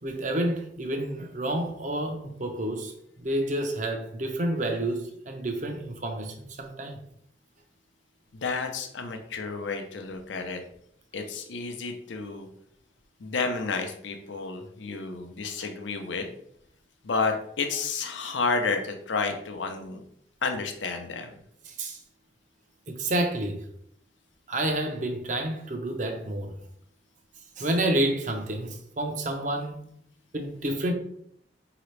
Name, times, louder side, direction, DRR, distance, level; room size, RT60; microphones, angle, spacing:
voice 1, 0.0-2.9 3.2-7.0 21.7-22.0 22.9-23.6 24.5-26.5 27.6-29.8 30.3-30.9, right 1 dB, 40° right, 0.7 m, -29 dB
voice 2, 8.3-10.6 11.1-12.5 13.2-16.3 17.0-20.0 20.4-21.4, left 4 dB, 85° left, 0.6 m, -31 dB
4.9 x 2.9 x 3.2 m
head